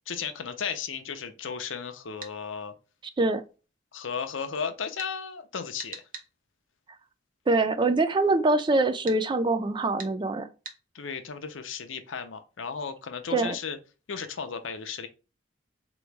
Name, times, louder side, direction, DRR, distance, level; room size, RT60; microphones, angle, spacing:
voice 1, 0.1-2.7 3.9-6.0 10.9-13.8 14.1-15.1, left 6 dB, 85° left, 0.7 m, -35 dB
sound 1, 2.2-2.4 5.0-5.1 5.8-6.3 9.1-9.2 10.0-10.1 10.6-10.8, right 5 dB, 45° right, 0.8 m, -41 dB
voice 2, 7.5-10.5 13.3-13.6, right 2 dB, 25° right, 0.3 m, -24 dB
4.0 x 3.1 x 3.4 m
head